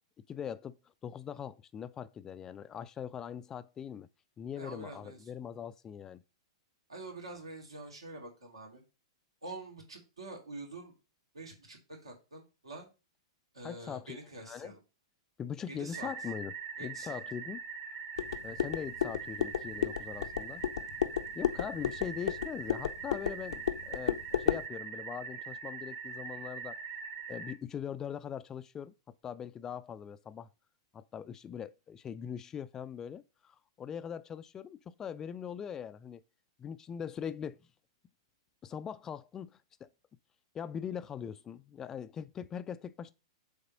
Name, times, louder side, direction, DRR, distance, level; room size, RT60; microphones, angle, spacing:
voice 1, 0.3-0.8 1.0-4.1 4.4-6.2 13.6-14.2 14.4-14.7 15.4-16.5 16.8-17.6 18.4-20.6 21.4-26.8 27.3-28.9 29.2-30.5 30.9-36.2 36.6-37.6 38.6-39.9 40.5-43.1, left 8 dB, 20° left, 0.4 m, -41 dB
voice 2, 4.6-5.2 6.9-8.8 9.4-10.9 11.3-12.9 13.5-14.8 15.7-16.1 16.8-17.2, right 2 dB, 75° right, 2.7 m, -46 dB
sound 1, 15.9-27.5, right 6 dB, 45° right, 2.4 m, -43 dB
sound 2, 18.2-24.7, left 9 dB, 65° left, 0.6 m, -33 dB
7.0 x 3.6 x 5.3 m
figure-of-eight pair, 105°, 3 cm